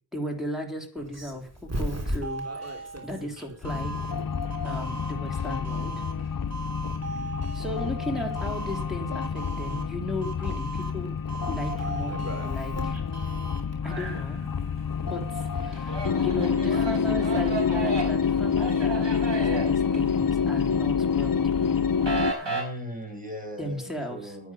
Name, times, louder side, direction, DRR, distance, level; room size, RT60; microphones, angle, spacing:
voice 1, 0.1-3.9 4.6-6.0 7.5-11.2 11.5-13.0 13.8-14.4 15.0-21.7 23.6-24.5, equal, ahead, 1 dB, 3.4 m, -36 dB
Doorbell, 1.0-13.8, right 2 dB, 35° right, 3.3 m, -37 dB
sound 1, 3.6-22.3, left 6 dB, 50° left, 0.8 m, -28 dB
sound 2, 13.8-14.9 15.2-20.7 21.0-22.6, right 3 dB, 80° right, 5.2 m, -34 dB
voice 2, 22.4-24.5, equal, 20° right, 1 dB, 5.8 m, -38 dB
10.0 x 8.9 x 7.1 m, 0.43 s
wide cardioid pair, 50°, 43 cm